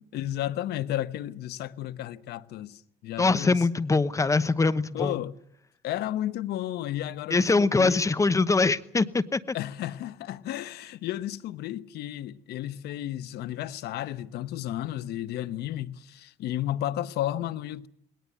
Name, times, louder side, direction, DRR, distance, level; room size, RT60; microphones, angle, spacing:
voice 1, 0.0-3.6 4.9-5.4 5.8-8.1 9.5-17.9, left 13 dB, 75° left, 1.0 m, -33 dB
voice 2, 3.2-5.2 7.3-9.6, left 3 dB, 20° left, 1.0 m, -23 dB
20.5 x 18.0 x 9.4 m
cardioid pair, 110°, 17 cm